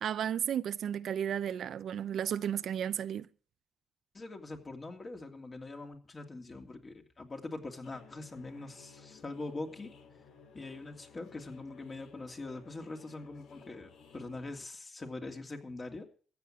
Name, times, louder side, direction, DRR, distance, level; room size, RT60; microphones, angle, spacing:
voice 1, 0.0-3.3, right 9 dB, 65° right, 0.6 m, -33 dB
voice 2, 4.1-9.9 10.5-16.1, left 2 dB, 30° left, 2.8 m, -43 dB
sound 1, 7.8-14.7, left 6 dB, 75° left, 2.3 m, -56 dB
14.5 x 8.4 x 7.5 m
cardioid pair, 85°, 0 cm